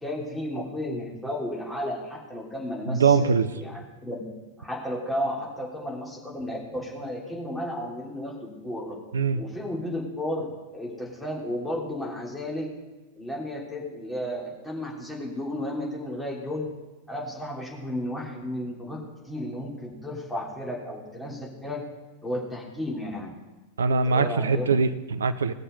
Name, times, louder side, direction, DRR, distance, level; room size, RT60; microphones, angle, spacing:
voice 1, 0.0-4.2 4.6-9.0 9.3-12.7 13.2-16.7 17.1-21.8 22.2-23.4 23.8-24.7, left 1 dB, 5° left, -3 dB, 3.1 m, -33 dB
voice 2, 2.9-3.5 9.1-9.4 23.8-25.5, right 5 dB, 70° right, 14 dB, 0.6 m, -22 dB
19.0 x 6.7 x 5.3 m, 1.1 s
figure-of-eight pair, 90°, 0 cm